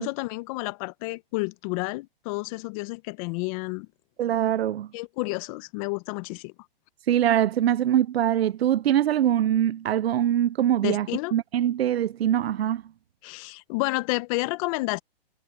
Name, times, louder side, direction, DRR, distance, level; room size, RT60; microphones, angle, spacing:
voice 1, 0.0-3.9 4.9-6.5 10.8-11.3 13.2-15.0, left 24 dB, 35° left, 0.9 m, -30 dB
voice 2, 4.2-4.9 7.0-11.1 11.3-12.8, right 11 dB, 90° right, 0.6 m, -23 dB
hypercardioid pair, 140°, 30 cm